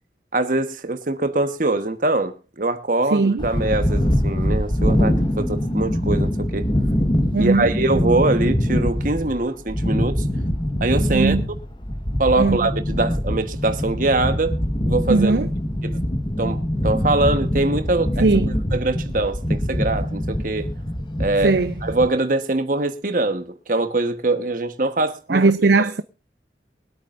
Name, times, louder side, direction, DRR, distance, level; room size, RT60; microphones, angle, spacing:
voice 1, 0.3-6.7 7.4-10.3 10.8-11.4 12.2-14.6 14.8-15.4 15.8-16.0 16.4-18.3 18.7-20.7 21.2-25.5, right 2 dB, 50° right, 1.2 m, -23 dB
voice 2, 3.1-3.5 7.3-7.7 11.1-11.5 12.4-12.7 15.1-15.5 18.2-18.5 21.4-21.7 25.3-26.0, right 3 dB, 70° right, 0.5 m, -19 dB
sound 1, 3.4-22.1, equal, 25° left, 1.3 m, -23 dB
23.5 x 8.6 x 2.5 m
head